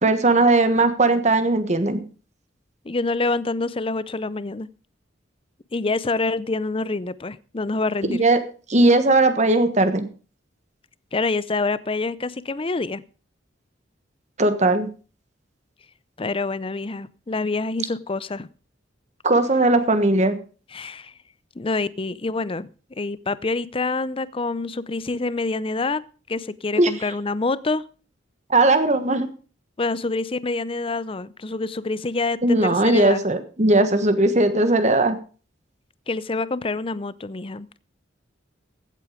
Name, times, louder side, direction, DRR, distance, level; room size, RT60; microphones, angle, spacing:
voice 1, 0.0-2.0 8.0-8.4 8.7-10.1 14.4-14.9 19.2-20.3 26.8-26.9 28.5-29.3 32.4-35.2, right 2 dB, 40° right, 9 dB, 1.4 m, -18 dB
voice 2, 2.8-4.7 5.7-8.2 11.1-13.0 16.2-18.5 20.7-21.1 21.6-22.7 23.0-26.0 26.3-27.8 29.8-33.2 36.1-37.8, left 3 dB, 30° left, 18 dB, 0.6 m, -26 dB
15.5 x 8.3 x 5.0 m, 0.38 s
head